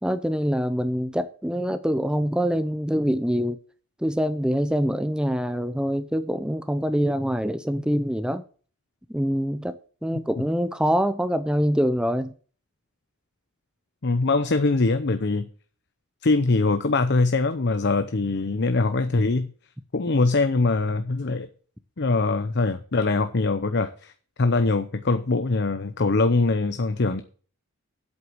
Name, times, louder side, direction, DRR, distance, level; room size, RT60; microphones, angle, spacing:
voice 1, 0.0-3.6 4.0-8.4 9.1-12.3, equal, 5° right, 0.5 m, -25 dB
voice 2, 14.0-15.5 16.2-19.5 19.9-21.5 22.0-24.1 24.4-27.2, left 3 dB, 50° left, 0.7 m, -22 dB
8.3 x 8.0 x 6.2 m
head